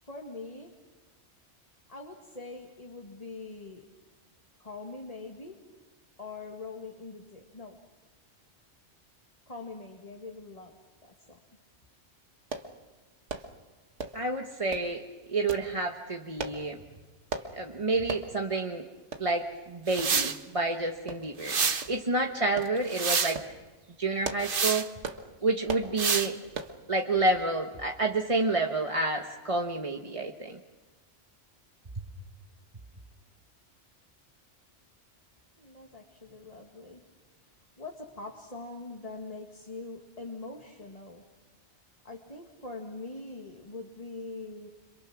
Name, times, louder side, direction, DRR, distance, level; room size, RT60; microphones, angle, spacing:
voice 1, 0.0-0.7 1.9-3.9 4.6-5.6 6.2-7.8 9.5-10.7 11.0-11.4 35.6-37.0 37.8-41.2 42.0-44.7, left 3 dB, 30° left, 1 dB, 2.1 m, -43 dB
sound 1, 12.5-12.7 13.3-13.5 14.0-14.3 14.7-14.9 15.5-15.7 16.4-16.6 17.3-17.5 18.1-18.3 18.7-18.8 19.1-19.3 20.0-20.1 21.1-21.5 21.8-22.0 22.6-22.7 23.2-23.5 24.0-24.5 25.0-25.2 25.7-25.9 26.5-26.8 27.3-27.4 27.7-27.8, right 4 dB, 90° right, 1.8 m, -37 dB
voice 2, 14.1-15.0 15.3-16.8 17.5-18.8 19.2-21.6 21.9-23.5 24.0-24.9 25.4-26.4 26.9-30.6, right 2 dB, 30° right, 2 dB, 1.3 m, -29 dB
sound 2, 19.9-20.4 21.4-21.9 22.6-23.4 24.4-24.9 26.0-26.3, right 5 dB, 50° right, 1.2 m, -27 dB
29.5 x 27.0 x 6.1 m, 1.3 s
omnidirectional pair, 1.2 m